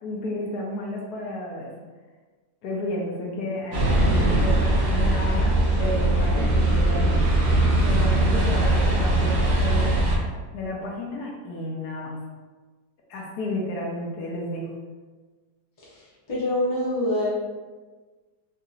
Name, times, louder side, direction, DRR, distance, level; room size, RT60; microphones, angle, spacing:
voice 1, 0.0-1.7 2.6-7.1 7.8-10.0 10.5-12.1 13.1-14.7, left 1 dB, 75° left, -2 dB, 1.2 m, -32 dB
sound 1, 3.7-10.2, right 1 dB, 60° right, 0.7 m, -21 dB
voice 2, 15.8-17.3, left 1 dB, 25° left, -7 dB, 0.6 m, -26 dB
3.8 x 2.7 x 2.5 m, 1.3 s
omnidirectional pair, 1.8 m